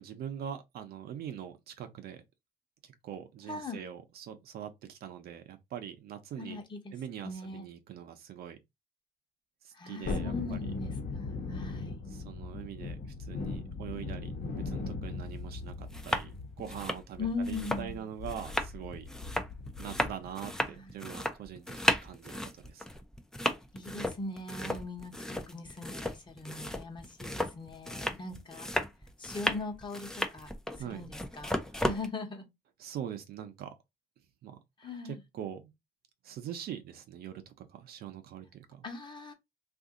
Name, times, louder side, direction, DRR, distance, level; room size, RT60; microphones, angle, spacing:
voice 1, 0.0-2.2 2.8-6.6 6.9-8.6 9.6-10.7 12.1-19.1 19.8-22.8 30.8-31.1 31.7-31.8 32.8-33.7 34.4-35.7 36.2-38.9, right 9 dB, 65° right, 0.7 m, -43 dB
voice 2, 3.5-3.8 6.4-6.9 7.2-7.7 9.7-12.1 17.2-18.1 20.5-21.1 23.7-28.7 29.2-30.5 30.8-32.5 34.8-35.2 38.8-39.3, left 3 dB, 25° left, 1.0 m, -40 dB
Thunderstorm, 10.0-20.3 20.6-20.7, left 3 dB, 50° left, 1.0 m, -39 dB
sound 1, 15.3-15.4 15.8-16.3 16.6-32.1, equal, 5° left, 0.5 m, -34 dB
2.7 x 2.5 x 3.7 m
cardioid pair, 110°, 17 cm